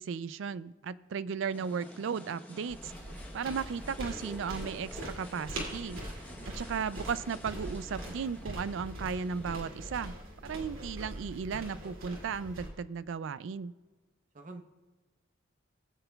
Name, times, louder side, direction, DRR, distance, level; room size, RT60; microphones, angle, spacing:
voice 1, 0.0-2.9 3.3-6.0 6.5-10.2 10.4-13.7, right 6 dB, 65° right, 17 dB, 0.3 m, -35 dB
sound 1, 1.5-9.5, left 1 dB, 10° left, 0.9 m, -50 dB
sound 2, 2.7-12.7, right 1 dB, 85° right, 2.4 m, -42 dB
voice 2, 6.3-6.9 14.3-14.6, right 2 dB, 40° right, 6 dB, 0.8 m, -48 dB
20.5 x 7.9 x 2.3 m, 1.3 s
head